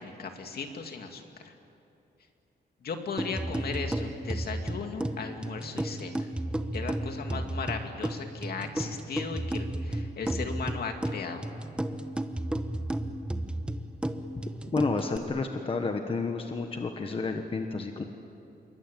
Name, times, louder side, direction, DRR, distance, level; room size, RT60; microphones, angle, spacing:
voice 1, 0.0-1.5 2.8-6.3 6.7-11.5, left 5 dB, 60° left, 4 dB, 2.6 m, -37 dB
sound 1, 3.2-15.2, right 1 dB, 5° right, 1.0 m, -33 dB
voice 2, 14.7-18.0, left 3 dB, 30° left, 5 dB, 1.3 m, -30 dB
27.0 x 23.0 x 9.3 m, 2.7 s
wide cardioid pair, 165°, 18 cm